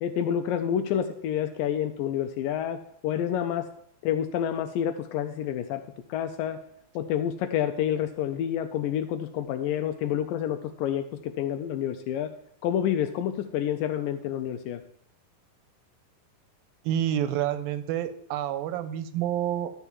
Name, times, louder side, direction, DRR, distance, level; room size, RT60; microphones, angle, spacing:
voice 1, 0.0-3.7 4.0-5.8 6.1-6.6 7.0-12.3 12.6-14.8, left 10 dB, 80° left, 7 dB, 2.2 m, -28 dB
voice 2, 16.8-19.7, right 10 dB, 90° right, 12 dB, 2.5 m, -28 dB
12.5 x 4.6 x 7.2 m, 0.67 s
omnidirectional pair, 4.1 m